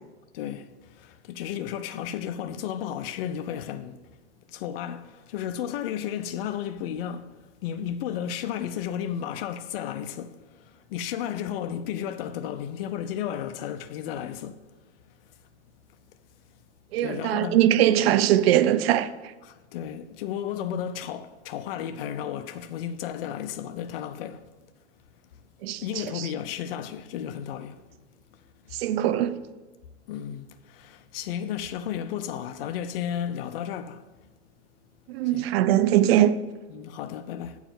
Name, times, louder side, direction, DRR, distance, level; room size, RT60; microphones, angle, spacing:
voice 1, 0.3-4.0 4.5-7.3 7.6-14.6 17.0-17.6 18.1-18.2 19.4-24.4 25.8-27.8 30.1-34.0 35.2-35.5 36.7-37.6, left 9 dB, 55° left, 0.6 m, -33 dB
voice 2, 16.9-19.3 25.6-26.3 28.7-29.4 35.1-36.4, right 12 dB, 60° right, 0.6 m, -22 dB
8.8 x 4.8 x 7.4 m
supercardioid pair, 150°, 35 cm